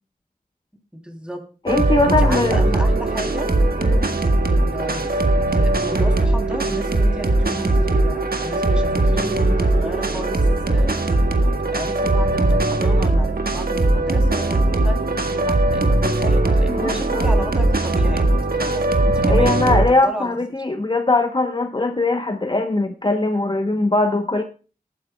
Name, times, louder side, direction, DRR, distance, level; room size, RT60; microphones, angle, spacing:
voice 1, 0.9-1.4 2.1-3.5 4.5-11.1 11.7-19.6 20.0-20.4, equal, 5° right, 3 dB, 3.1 m, -33 dB
voice 2, 1.6-2.6 3.8-4.1 16.7-17.3 19.3-24.4, left 2 dB, 30° left, 6 dB, 0.9 m, -21 dB
sound 1, 1.7-19.9, right 2 dB, 80° right, 1.4 m, -19 dB
19.5 x 9.4 x 2.3 m, 0.35 s
wide cardioid pair, 55°, 15 cm